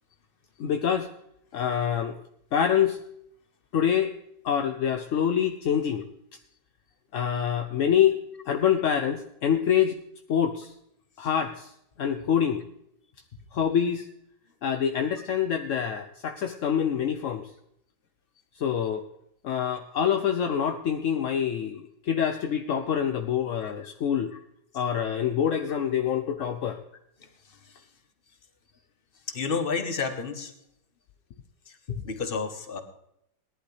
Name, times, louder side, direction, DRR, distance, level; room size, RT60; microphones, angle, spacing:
voice 1, 0.6-1.1 1.5-2.2 2.5-3.0 3.7-4.1 4.4-6.0 7.1-8.2 8.5-10.0 10.3-10.7 11.2-11.7 12.0-12.6 13.5-14.1 14.6-17.5 18.6-19.0 19.4-24.3 24.7-26.8, left 8 dB, 65° left, 6 dB, 0.8 m, -26 dB
voice 2, 29.3-30.5 31.7-32.8, left 5 dB, 35° left, 8 dB, 1.2 m, -31 dB
18.5 x 11.0 x 3.3 m, 0.77 s
omnidirectional pair, 2.0 m